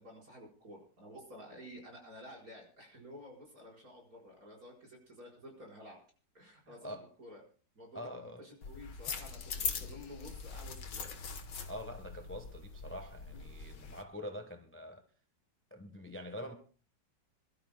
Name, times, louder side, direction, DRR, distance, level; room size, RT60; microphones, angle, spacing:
voice 1, 0.0-6.0 6.3-7.4 7.7-11.1, equal, 55° right, 5.1 m, -52 dB
voice 2, 6.7-7.1 7.9-8.5 11.7-15.0 15.7-16.5, equal, 10° left, 0.9 m, -45 dB
sound 1, 8.6-14.0, left 5 dB, 85° left, 1.8 m, -42 dB
27.5 x 12.5 x 2.2 m
omnidirectional pair, 1.9 m